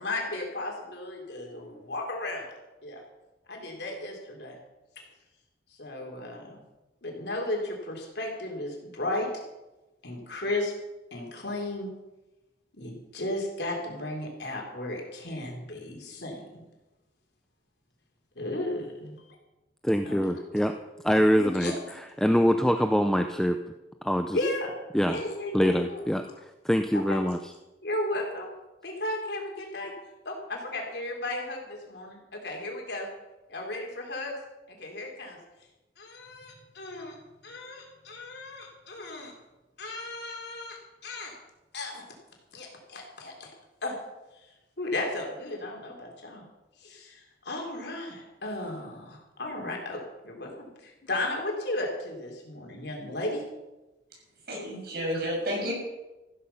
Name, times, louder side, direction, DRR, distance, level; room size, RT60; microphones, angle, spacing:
voice 1, 0.0-2.4 2.8-3.0 3.5-4.6 5.0-5.1 5.8-6.6 7.0-9.3 10.0-10.7 11.1-11.9 12.7-16.6 18.4-19.4 20.0-20.3 21.3-21.7 24.3-24.7 25.0-26.0 26.9-27.2 27.8-28.5 28.8-29.9 30.3-33.1 33.5-34.4 34.7-35.4 36.0-39.3 39.8-41.3 41.7-42.0 42.5-43.5 43.8-44.0 44.4-46.4 46.8-53.4, left 2 dB, 65° left, 0 dB, 4.0 m, -35 dB
voice 2, 19.8-20.7 21.0-21.7 22.2-23.6 24.0-24.4 24.9-25.2 25.5-26.2 26.6-27.4, equal, 5° left, 6 dB, 0.6 m, -24 dB
voice 3, 54.5-55.7, equal, 60° right, -1 dB, 6.6 m, -31 dB
14.5 x 13.5 x 5.7 m, 1.1 s
head